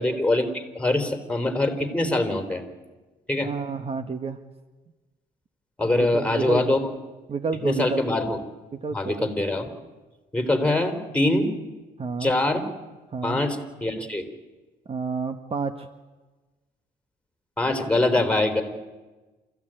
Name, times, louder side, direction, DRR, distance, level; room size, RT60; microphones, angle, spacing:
voice 1, 0.0-2.6 3.3-3.5 5.8-6.8 7.6-8.4 8.9-9.7 10.3-11.5 12.2-12.6 13.2-14.2 17.6-18.6, left 2 dB, 5° left, 7 dB, 3.8 m, -23 dB
voice 2, 3.4-4.4 5.8-6.7 7.3-8.0 8.7-9.3 12.0-12.3 13.1-13.4 14.9-15.9, right 4 dB, 35° right, 9 dB, 1.3 m, -30 dB
28.5 x 15.0 x 9.0 m, 1.2 s
cardioid pair, 85°, 17 cm